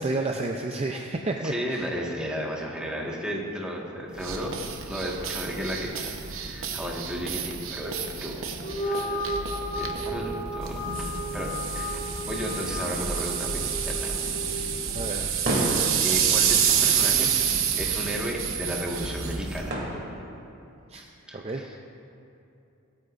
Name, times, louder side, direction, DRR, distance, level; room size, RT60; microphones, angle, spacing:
voice 1, 0.0-1.9 14.9-15.3 20.9-21.0 21.3-21.7, right 2 dB, 30° right, 2 dB, 0.5 m, -30 dB
voice 2, 1.4-4.5 4.9-8.5 8.8-9.4 9.7-14.7 15.6-17.4 17.8-19.8 21.3-21.7, equal, 5° right, -3 dB, 1.6 m, -34 dB
sound 1, 4.2-19.7, right 7 dB, 65° right, 0.9 m, -28 dB
sound 2, 8.5-15.1, left 1 dB, 35° left, 1.4 m, -34 dB
sound 3, 14.2-20.6, right 1 dB, 50° right, 2.7 m, -35 dB
24.0 x 9.7 x 2.6 m, 2.8 s
head